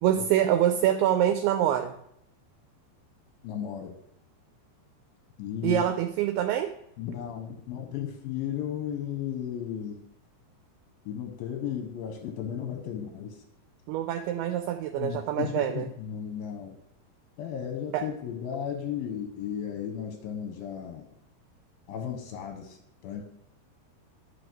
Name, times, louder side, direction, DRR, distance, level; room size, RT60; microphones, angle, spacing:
voice 1, 0.0-1.9 5.6-6.7 13.9-15.9 17.9-18.1, right 11 dB, 80° right, 7 dB, 2.3 m, -25 dB
voice 2, 3.4-4.0 5.4-5.8 7.0-10.0 11.1-13.4 15.0-16.8 17.4-21.1 21.9-22.8 23.0-23.2, left 9 dB, 80° left, 4 dB, 2.3 m, -34 dB
11.0 x 4.6 x 5.2 m, 0.75 s
omnidirectional pair, 5.0 m